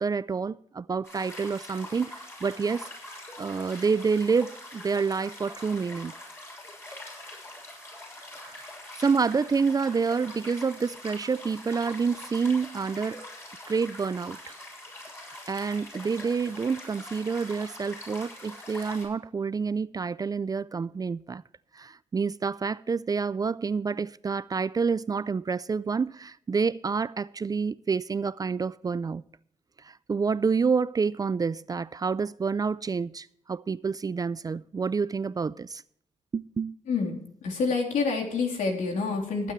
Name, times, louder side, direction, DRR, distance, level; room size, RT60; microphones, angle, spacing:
voice 1, 0.0-2.9 3.4-6.1 8.4-8.7 9.0-13.2 13.7-14.5 15.3-21.4 21.7-29.2 29.8-35.8 36.3-36.7, right 5 dB, 30° right, 0.3 m, -28 dB
sound 1, 1.0-19.0, left 1 dB, 20° left, 6.5 m, -44 dB
voice 2, 36.9-39.5, left 4 dB, 85° left, 3.6 m, -28 dB
20.0 x 9.2 x 3.2 m
cardioid pair, 105°, 13 cm